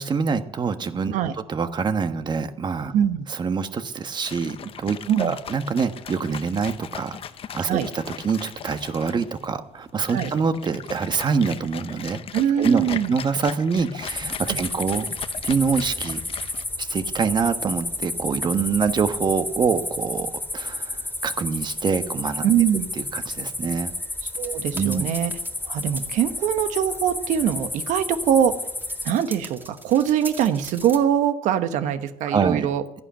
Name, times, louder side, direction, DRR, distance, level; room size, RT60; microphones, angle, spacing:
voice 1, 0.0-1.2 1.5-2.9 3.3-7.2 7.5-12.2 12.6-15.1 15.4-16.2 16.8-22.4 23.0-23.9 24.7-25.1 32.3-32.7, right 5 dB, 35° right, 9 dB, 1.3 m, -25 dB
voice 2, 2.9-3.2 5.1-5.4 7.7-7.9 10.1-10.3 12.3-13.1 14.5-14.6 22.4-22.9 24.2-25.3 25.7-28.5 29.0-32.8, right 9 dB, 70° right, 10 dB, 1.2 m, -22 dB
sound 1, 4.2-16.6, left 8 dB, 45° left, 0.9 m, -39 dB
sound 2, 14.1-29.1, left 2 dB, 15° left, 2.5 m, -31 dB
sound 3, 24.2-25.5 25.7-26.0 26.6-26.7 27.0-27.1 27.3-27.5 28.0-31.0, right 2 dB, 15° right, 2.2 m, -39 dB
13.0 x 11.0 x 8.9 m, 0.88 s
cardioid pair, 95°, 13 cm